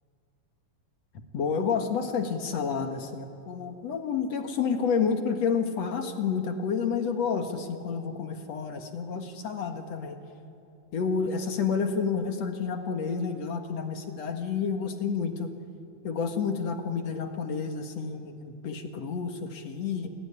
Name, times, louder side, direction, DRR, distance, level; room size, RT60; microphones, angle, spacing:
voice 1, 1.3-10.2 10.9-15.5 16.0-20.1, left 6 dB, 55° left, 5 dB, 2.4 m, -30 dB
29.0 x 19.5 x 9.9 m, 2.6 s
omnidirectional pair, 4.2 m